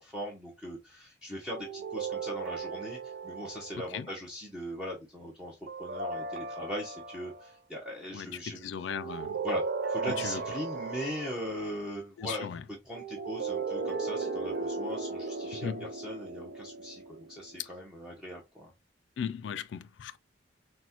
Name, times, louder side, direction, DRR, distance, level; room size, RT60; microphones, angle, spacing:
voice 1, 0.0-8.7 9.4-12.5 12.8-18.7, equal, 5° right, 0.9 m, -40 dB
sound 1, 1.5-4.0 5.7-7.5 8.9-11.6 13.0-17.5, right 4 dB, 55° right, 0.4 m, -36 dB
voice 2, 3.7-4.1 8.1-9.4 10.1-10.4 12.2-12.6 15.6-15.9 19.2-20.2, left 7 dB, 80° left, 0.3 m, -37 dB
5.9 x 2.2 x 2.9 m
head